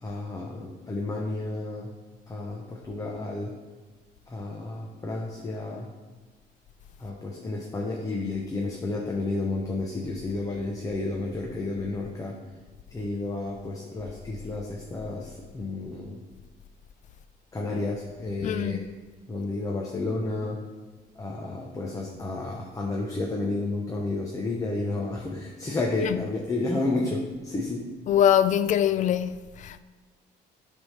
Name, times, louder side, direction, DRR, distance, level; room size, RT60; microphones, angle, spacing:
voice 1, 0.0-1.9 2.3-3.5 4.3-5.9 7.0-12.4 12.9-16.2 17.5-18.8 19.3-20.6 21.2-27.8, left 2 dB, 20° left, 0.9 m, -31 dB
voice 2, 18.4-18.8 26.0-26.3 28.1-29.8, left 10 dB, 50° left, 0.4 m, -23 dB
7.7 x 3.6 x 5.7 m
cardioid pair, 110°, 17 cm